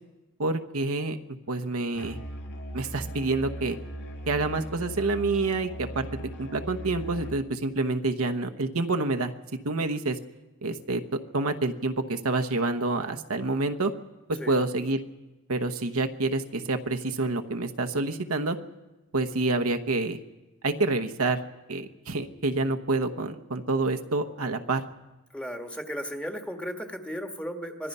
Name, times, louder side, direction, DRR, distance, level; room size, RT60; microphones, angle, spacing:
voice 1, 0.4-1.2 1.5-2.2 2.7-3.8 4.3-6.1 6.4-9.3 9.6-10.2 10.6-13.9 14.3-15.0 15.5-18.6 19.1-20.2 20.6-21.4 21.7-24.8, right 3 dB, 65° right, 6 dB, 1.1 m, -27 dB
Musical instrument, 1.9-7.4, right 1 dB, 55° left, 2.4 m, -39 dB
voice 2, 25.3-27.9, equal, 5° left, 4 dB, 1.6 m, -35 dB
25.0 x 20.0 x 5.6 m, 1.1 s
head